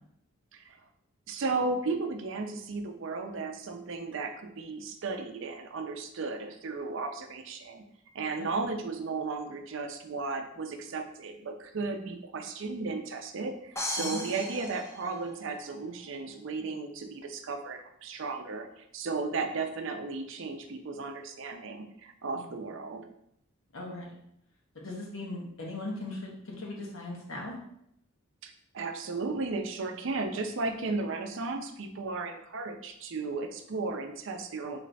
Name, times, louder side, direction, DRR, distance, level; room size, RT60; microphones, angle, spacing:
voice 1, 1.3-7.8 8.1-23.1 28.4-34.8, right 3 dB, 65° right, 6 dB, 0.5 m, -35 dB
sound 1, 13.8-15.7, left 1 dB, 15° left, 0.4 m, -36 dB
voice 2, 23.7-24.2 24.7-27.6, left 2 dB, 75° left, -1 dB, 1.0 m, -39 dB
3.2 x 3.2 x 4.0 m, 0.74 s
head